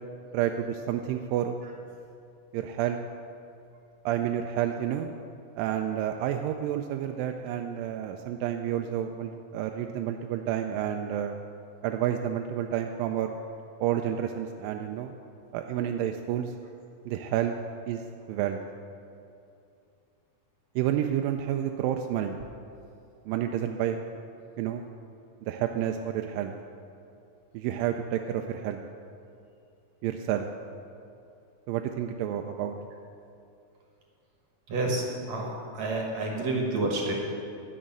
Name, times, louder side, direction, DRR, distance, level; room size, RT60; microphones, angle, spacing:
voice 1, 0.3-1.6 2.5-3.0 4.1-5.1 5.6-11.4 11.8-13.4 13.8-15.1 15.5-16.5 17.1-17.6 17.9-18.0 18.3-18.6 20.8-22.4 23.3-24.0 24.6-24.8 25.4-26.5 27.5-28.8 30.0-30.5 31.7-32.8, right 10 dB, 85° right, 4 dB, 2.3 m, -29 dB
voice 2, 34.7-37.1, right 2 dB, 60° right, 0 dB, 2.4 m, -29 dB
11.0 x 6.4 x 9.1 m, 2.6 s
omnidirectional pair, 4.0 m